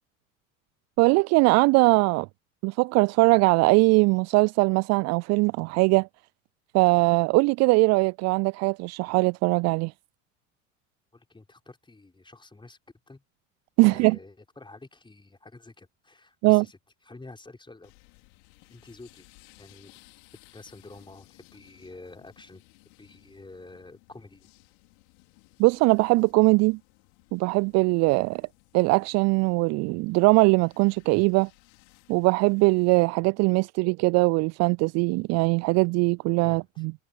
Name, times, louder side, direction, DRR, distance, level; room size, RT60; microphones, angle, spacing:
voice 1, 1.0-2.3 2.6-6.1 6.7-9.9 13.8-14.2 16.4-16.6 25.6-26.8 27.3-28.5 28.7-31.5 32.1-36.9, right 27 dB, 40° right, 0.4 m, -21 dB
voice 2, 11.1-12.8 13.1-13.2 13.8-16.8 17.1-17.9 18.7-19.3 19.6-19.9 20.5-22.6 23.0-24.5 36.4-36.8, left 2 dB, 10° left, 4.7 m, -48 dB
sound 1, 17.8-33.0, left 31 dB, 65° left, 4.6 m, -59 dB
figure-of-eight pair, 70°, 40 cm